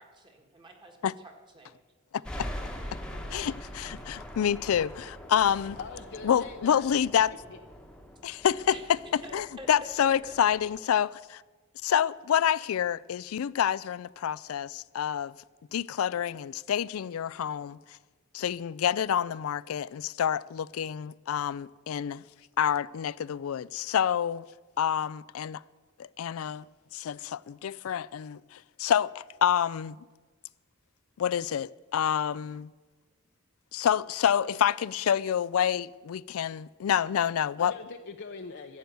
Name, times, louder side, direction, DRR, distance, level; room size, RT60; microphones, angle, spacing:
voice 1, 0.0-1.7 8.7-8.9 9.2-10.5, right 1 dB, 25° right, 1.8 m, -47 dB
voice 2, 2.1-2.5 3.3-5.8 6.2-7.3 8.2-11.4 11.8-15.3 15.7-17.8 18.3-22.2 22.6-24.4 24.8-25.6 26.2-26.6 26.9-30.0 31.2-32.7 33.7-37.7, left 9 dB, 85° left, 0.4 m, -28 dB
sound 1, 2.2-10.8, equal, 5° left, 1.2 m, -43 dB
voice 3, 5.8-6.9 37.6-38.8, left 4 dB, 55° left, 0.7 m, -42 dB
14.5 x 7.0 x 9.2 m
head